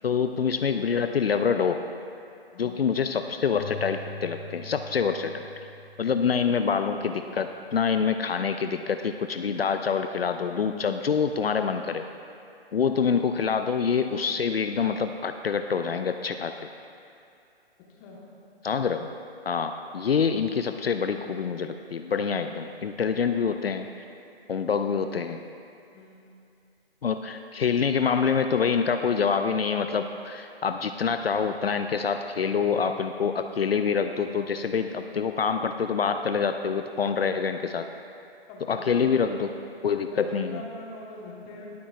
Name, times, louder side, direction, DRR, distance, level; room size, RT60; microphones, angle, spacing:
voice 1, 0.0-1.8 2.6-5.4 6.0-12.1 12.7-16.7 18.6-19.1 19.5-23.9 24.5-25.4 27.0-37.9 38.7-39.5 39.8-40.6, left 6 dB, 70° left, 7 dB, 0.6 m, -26 dB
voice 2, 2.5-2.8 17.9-18.2 24.6-24.8 25.9-26.2 38.5-39.3 39.9-41.8, left 2 dB, 15° left, -2 dB, 1.3 m, -43 dB
Keyboard (musical), 3.5-7.1, left 2 dB, 45° left, 1.3 m, -43 dB
20.5 x 8.5 x 2.5 m, 2.5 s
figure-of-eight pair, 140°, 31 cm